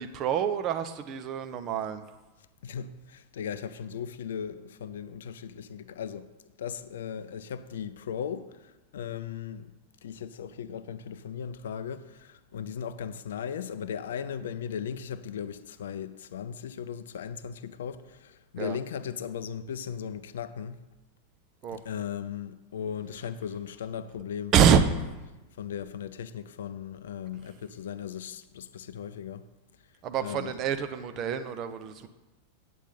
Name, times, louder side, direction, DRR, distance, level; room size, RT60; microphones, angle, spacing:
voice 1, 0.0-2.0 18.6-18.8 21.6-21.8 24.5-24.9 30.0-32.1, right 8 dB, 35° right, 0.6 m, -26 dB
voice 2, 2.6-6.3 6.6-9.7 10.0-20.8 21.7-25.0 25.6-29.5 30.2-30.6, left 8 dB, 60° left, 0.4 m, -37 dB
9.2 x 8.1 x 4.0 m
figure-of-eight pair, 90°, 0 cm